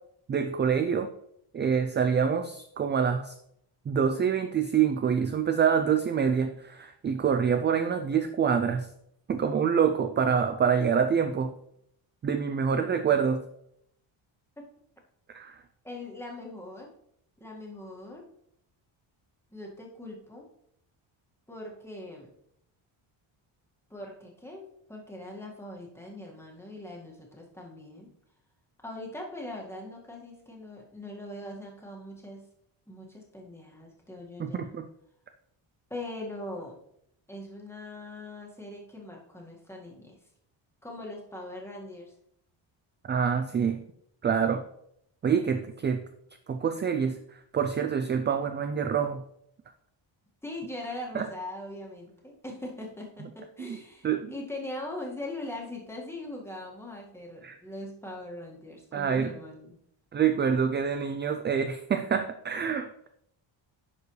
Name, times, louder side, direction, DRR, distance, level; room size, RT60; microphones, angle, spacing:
voice 1, 0.3-1.1 1.5-3.3 3.9-8.9 9.3-11.5 12.2-13.4 15.3-15.5 34.4-34.9 43.1-43.8 44.2-44.6 45.2-46.0 46.5-47.2 47.5-49.2 51.1-51.3 53.6-53.8 54.0-54.3 57.4-57.6 58.9-59.3 60.1-63.1, right 7 dB, 25° right, 8 dB, 0.3 m, -26 dB
voice 2, 15.8-16.9 17.4-18.3 19.5-20.5 21.5-22.3 23.9-28.1 28.8-32.5 32.9-34.7 35.9-36.8 37.3-40.2 40.8-42.1 50.4-59.8, left 1 dB, 5° left, -2 dB, 1.8 m, -41 dB
11.0 x 4.8 x 3.2 m, 0.73 s
cardioid pair, 115°, 48 cm